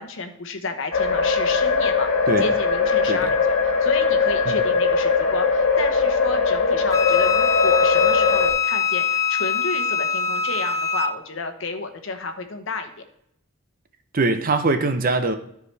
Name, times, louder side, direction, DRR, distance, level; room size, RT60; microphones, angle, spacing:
voice 1, 0.0-2.1 2.4-12.9, left 4 dB, 60° left, 1.0 m, -31 dB
sound 1, 0.9-8.5, left 4 dB, 85° left, 1.6 m, -20 dB
Wind instrument woodwind instrument, 6.9-11.2, left 6 dB, 15° left, 0.3 m, -23 dB
voice 2, 14.1-15.4, right 3 dB, 40° right, 0.7 m, -22 dB
13.0 x 4.8 x 3.3 m
head